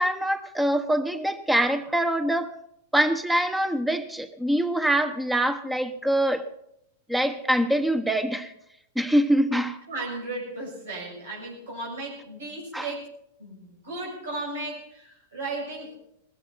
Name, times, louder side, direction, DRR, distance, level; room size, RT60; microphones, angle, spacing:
voice 1, 0.0-2.5 2.9-6.5 7.1-8.5 8.9-9.8 12.7-12.9, right 1 dB, 5° right, 10 dB, 1.2 m, -24 dB
voice 2, 9.9-13.1 13.4-15.9, right 2 dB, 90° right, -2 dB, 6.9 m, -35 dB
19.0 x 14.5 x 4.1 m, 0.77 s
hypercardioid pair, 120°, 0 cm